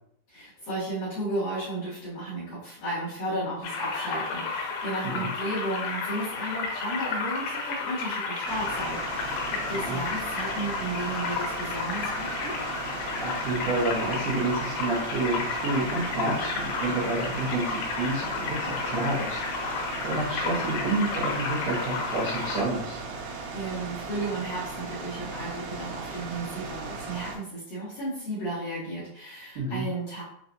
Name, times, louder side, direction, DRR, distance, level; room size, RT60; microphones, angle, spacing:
voice 1, 0.3-12.5 23.5-30.2, right 1 dB, 60° left, -10 dB, 2.0 m, -34 dB
sound 1, 3.6-22.6, left 4 dB, 75° left, 2.4 m, -32 dB
sound 2, 8.5-27.4, right 4 dB, 85° right, 3.0 m, -37 dB
voice 2, 13.1-23.0 29.6-29.9, right 2 dB, 70° right, -8 dB, 2.0 m, -29 dB
6.5 x 2.4 x 2.6 m, 0.71 s
omnidirectional pair, 4.8 m